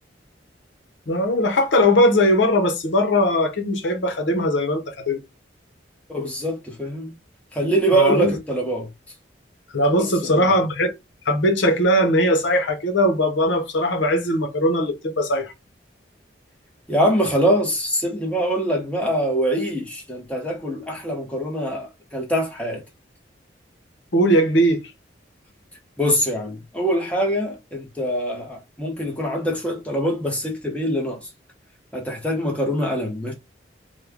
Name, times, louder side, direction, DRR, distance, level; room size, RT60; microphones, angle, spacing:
voice 1, 1.1-5.2 7.9-8.3 9.7-10.9 11.3-15.5 24.1-24.8, equal, 80° left, 0.8 m, -19 dB
voice 2, 6.1-7.2 7.5-8.9 10.0-10.5 16.9-22.8 26.0-31.3 31.9-33.3, right 1 dB, 5° left, 0.8 m, -24 dB
3.2 x 2.2 x 3.5 m
head